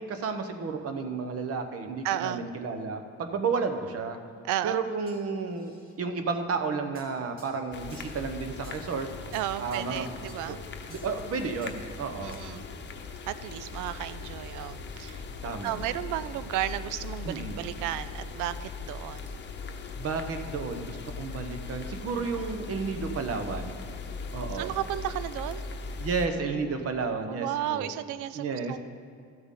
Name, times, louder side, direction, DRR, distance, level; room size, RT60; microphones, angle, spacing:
voice 1, 0.0-4.2 4.6-9.1 9.6-10.1 10.5-10.6 10.9-12.4 15.4-15.8 17.3-17.6 20.0-23.8 24.3-24.7 26.0-27.9 28.3-28.8, right 4 dB, 50° right, 7 dB, 1.0 m, -32 dB
voice 2, 2.0-2.5 4.4-4.9 9.3-10.6 12.2-12.7 13.3-15.2 15.6-19.3 24.5-25.6 27.3-28.8, right 12 dB, 90° right, 15 dB, 0.5 m, -33 dB
sound 1, 5.1-6.0 6.9-8.2 8.6-8.9 9.3-10.0 10.3-10.4 10.9-11.2 11.6-11.8 12.3-12.5, right 1 dB, 30° right, 2.3 m, -55 dB
sound 2, 7.7-26.3, left 4 dB, 35° left, 0.9 m, -39 dB
13.5 x 7.9 x 3.8 m, 2.3 s
cardioid pair, 105°, 30 cm